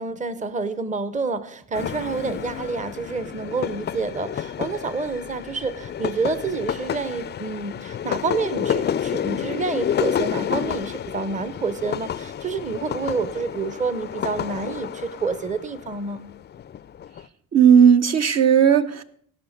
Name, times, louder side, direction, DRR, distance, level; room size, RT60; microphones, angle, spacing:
voice 1, 0.0-16.2, right 4 dB, 25° right, 13 dB, 0.8 m, -28 dB
sound 1, 1.7-17.3, left 9 dB, 35° left, 0.4 m, -30 dB
voice 2, 17.5-19.0, right 8 dB, 50° right, 9 dB, 0.8 m, -15 dB
16.5 x 5.9 x 6.5 m, 0.62 s
cardioid pair, 100°, 32 cm